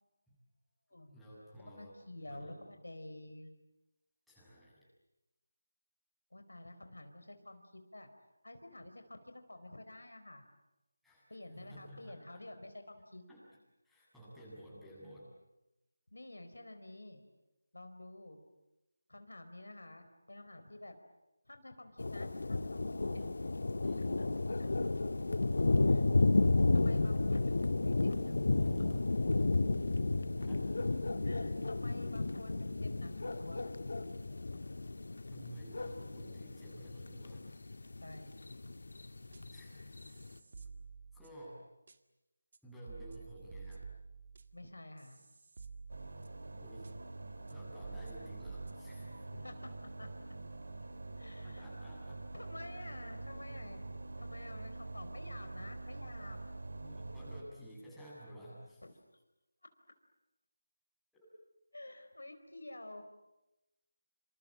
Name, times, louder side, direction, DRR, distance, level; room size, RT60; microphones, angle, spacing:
voice 1, 1.1-2.0 2.3-2.6 4.3-4.8 11.0-12.4 13.3-13.5 13.8-15.3 23.1-23.5 23.8-24.2 30.4-30.7 35.3-37.4 39.5-39.8 40.1-40.2 41.1-41.6 42.6-43.8 46.6-47.0 47.5-49.3 51.4-52.2 56.8-58.8, right 1 dB, ahead, -9 dB, 7.7 m, -53 dB
voice 2, 1.7-3.5 6.3-8.1 8.4-10.4 11.3-13.2 16.1-17.2 17.7-18.4 19.1-20.9 21.5-23.2 24.0-24.7 25.8-26.0 26.7-28.7 31.2-33.8 38.0-38.3 44.5-45.2 49.3-50.1 51.2-51.6 52.3-53.8 54.2-56.4 58.8-58.9 61.7-63.0, left 1 dB, 90° left, 7 dB, 4.3 m, -50 dB
sound 1, 22.0-40.3, left 2 dB, 65° left, 1.7 m, -32 dB
sound 2, 39.3-39.6 40.0-41.5 41.9-42.0 42.5-42.6 42.9-46.5 46.8-46.9 47.5-47.6 47.8-48.7, right 5 dB, 50° right, 2.0 m, -51 dB
sound 3, 45.9-57.4, right 2 dB, 75° right, 3.1 m, -45 dB
27.5 x 26.5 x 7.6 m, 0.99 s
figure-of-eight pair, 165°, 0 cm